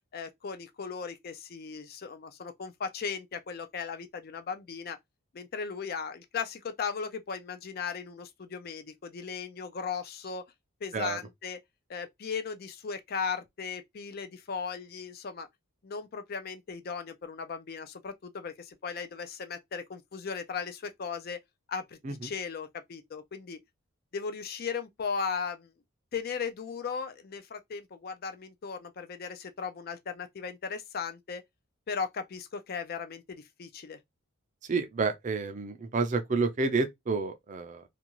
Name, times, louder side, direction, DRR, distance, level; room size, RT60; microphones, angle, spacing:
voice 1, 0.1-5.0 5.3-10.4 10.8-11.6 11.9-15.5 15.8-21.4 21.7-23.6 24.1-25.7 26.1-31.4 31.9-34.0, left 5 dB, 45° left, 0.4 m, -37 dB
voice 2, 34.7-37.8, right 4 dB, 35° right, 0.4 m, -29 dB
2.5 x 2.3 x 2.9 m
head